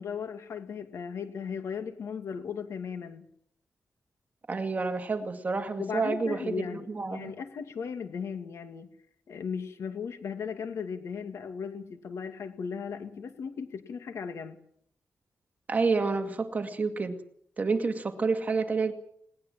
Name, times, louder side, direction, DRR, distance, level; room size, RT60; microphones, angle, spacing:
voice 1, 0.0-3.3 5.8-8.9 9.3-14.6, left 6 dB, 80° left, 7 dB, 2.4 m, -37 dB
voice 2, 4.5-7.3 15.7-17.2 17.6-18.9, right 4 dB, 35° right, 6 dB, 2.3 m, -29 dB
20.0 x 19.0 x 7.6 m, 0.69 s
wide cardioid pair, 145°, 5 cm